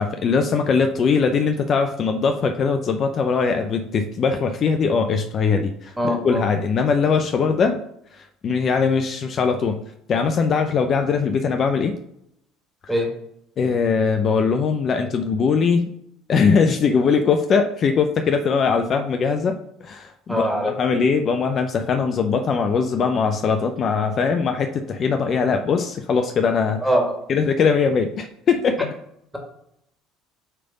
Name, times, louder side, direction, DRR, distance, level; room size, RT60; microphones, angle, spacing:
voice 1, 0.0-7.8 8.1-9.8 10.1-11.9 12.8-12.9 13.6-15.9 16.3-19.6 19.8-26.8 27.3-28.9, left 5 dB, 45° left, 6 dB, 0.6 m, -21 dB
voice 2, 6.0-6.5 12.9-13.1 20.3-20.7 26.8-27.2, equal, 5° right, 1 dB, 2.0 m, -22 dB
7.6 x 3.5 x 3.9 m, 0.74 s
supercardioid pair, 85°, 0 cm